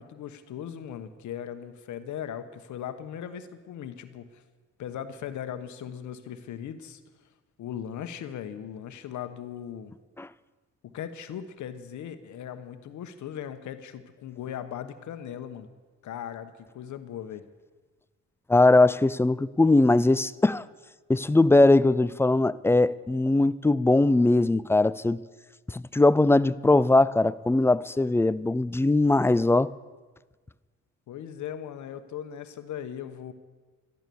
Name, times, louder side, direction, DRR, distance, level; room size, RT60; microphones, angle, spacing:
voice 1, 0.0-4.4 4.8-7.0 7.6-9.9 10.8-15.7 16.0-17.4 31.1-33.3, left 9 dB, 75° left, 1.1 m, -38 dB
voice 2, 18.5-20.6 21.1-25.2 25.7-29.7, left 2 dB, 10° left, 0.4 m, -20 dB
13.0 x 12.5 x 6.9 m
cardioid pair, 90°, 30 cm